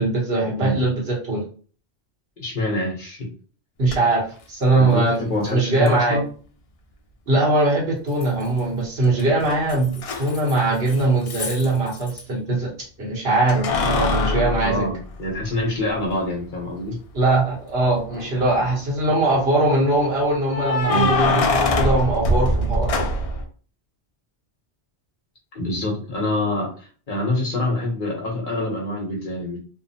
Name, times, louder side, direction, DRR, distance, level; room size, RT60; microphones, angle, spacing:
voice 1, 0.0-1.4 3.8-6.2 7.3-12.7 13.0-14.8 17.1-23.1, right 2 dB, 65° right, -3 dB, 1.2 m, -21 dB
voice 2, 2.4-3.3 4.8-6.2 14.6-17.0 20.9-21.2 25.5-29.6, left 1 dB, 50° left, -2 dB, 1.0 m, -25 dB
Keys jangling, 3.9-4.0 5.9-6.0 8.2-8.7 9.0-12.2 13.5-15.6 16.1-16.2 18.0-18.5 20.5-23.4, left 2 dB, 70° left, 0.3 m, -23 dB
2.7 x 2.1 x 2.7 m, 0.41 s
omnidirectional pair, 1.1 m